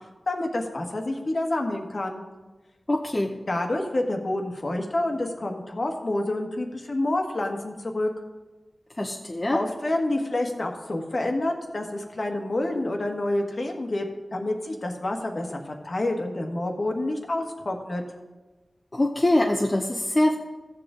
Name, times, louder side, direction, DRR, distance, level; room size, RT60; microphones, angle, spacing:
voice 1, 0.3-2.2 3.5-8.1 9.5-14.1 14.3-15.6 15.8-18.0, left 1 dB, 60° left, 3 dB, 1.5 m, -28 dB
voice 2, 2.9-3.4 9.0-9.6 18.9-20.3, left 1 dB, 30° left, 1 dB, 0.8 m, -23 dB
14.5 x 7.8 x 3.8 m, 1.2 s
cardioid pair, 50°, 0 cm